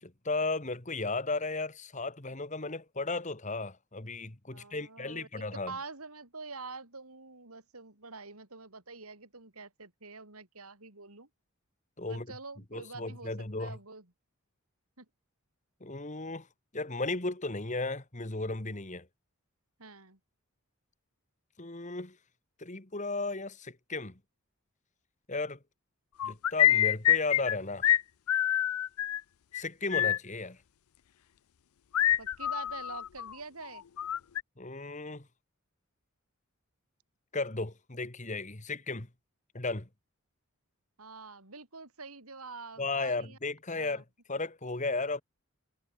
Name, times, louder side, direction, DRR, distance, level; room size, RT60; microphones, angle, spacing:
voice 1, 0.0-5.7 12.0-12.3 12.7-13.8 15.8-16.5 16.7-19.1 21.6-22.2 22.6-24.2 25.3-25.6 26.2-27.9 29.5-30.6 34.6-35.3 37.3-39.1 39.5-39.9 42.8-45.2, left 3 dB, 35° left, 1.8 m, -35 dB
voice 2, 4.5-11.3 12.1-14.1 15.0-15.1 19.8-20.2 32.2-33.8 41.0-43.4 43.8-44.0, right 4 dB, 85° right, 5.3 m, -46 dB
sound 1, 26.2-27.6 27.8-28.0 28.3-29.2 29.5-29.6 29.9-30.2 31.9-33.3 33.6-34.4, left 12 dB, 90° left, 0.5 m, -26 dB
head